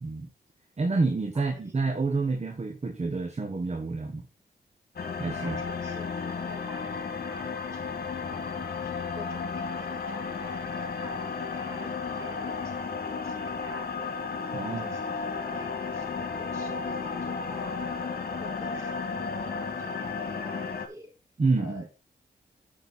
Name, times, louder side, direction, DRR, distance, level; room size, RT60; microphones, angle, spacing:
voice 1, 0.8-4.2 5.2-5.6 14.5-15.0 21.4-21.9, right 3 dB, 40° right, 1.4 m, -28 dB
voice 2, 1.3-2.0 5.4-17.8 18.4-21.1 21.6-21.9, equal, 15° right, 6.4 m, -49 dB
sound 1, 5.0-20.9, left 5 dB, 60° left, 1.8 m, -33 dB
9.5 x 6.5 x 4.2 m
cardioid pair, 65°, 17 cm